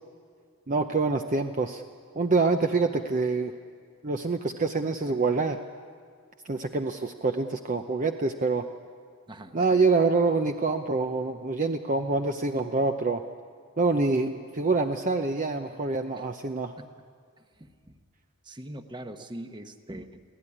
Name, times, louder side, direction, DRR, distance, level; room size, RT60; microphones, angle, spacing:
voice 1, 0.7-1.8 2.1-3.5 4.0-5.6 6.5-8.7 9.5-13.2 13.8-16.7, right 3 dB, 35° right, 5 dB, 0.7 m, -26 dB
voice 2, 9.3-9.8 16.1-16.3 16.8-16.9 17.4-17.9 18.4-20.2, right 1 dB, 20° right, 7 dB, 1.1 m, -42 dB
25.0 x 16.5 x 9.9 m, 2.1 s
head